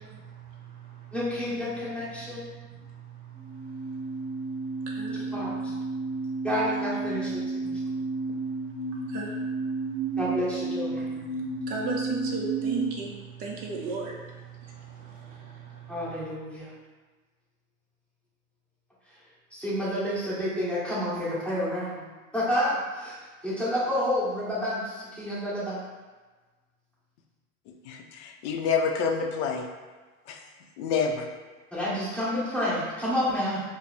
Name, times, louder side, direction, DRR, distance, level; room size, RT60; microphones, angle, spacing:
voice 1, 0.1-1.1 2.5-5.3 5.9-6.5 7.6-10.2 11.5-15.9, right 3 dB, 20° right, -2 dB, 0.4 m, -39 dB
voice 2, 1.1-2.4 5.1-5.7 6.4-7.4 10.2-11.1 15.9-16.7 19.5-22.1 22.3-23.2 23.4-25.8 31.7-33.6, equal, ahead, -11 dB, 1.4 m, -29 dB
sound 1, 3.3-12.9, right 3 dB, 45° right, 0.9 m, -32 dB
voice 3, 27.8-29.7 30.3-30.4 30.8-31.3, left 5 dB, 50° left, 3 dB, 0.6 m, -28 dB
4.7 x 2.1 x 3.4 m, 1.3 s
hypercardioid pair, 125°, 45 cm